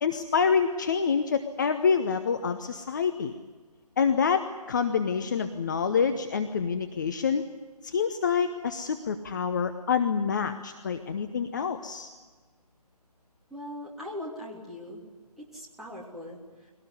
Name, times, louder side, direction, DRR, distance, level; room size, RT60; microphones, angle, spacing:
voice 1, 0.0-3.3 4.0-7.4 7.8-12.1, left 6 dB, 30° left, 8 dB, 0.9 m, -27 dB
voice 2, 13.5-15.0 15.4-16.7, left 1 dB, ahead, -6 dB, 3.1 m, -40 dB
22.5 x 18.0 x 9.8 m, 1.3 s
figure-of-eight pair, 150°, 20 cm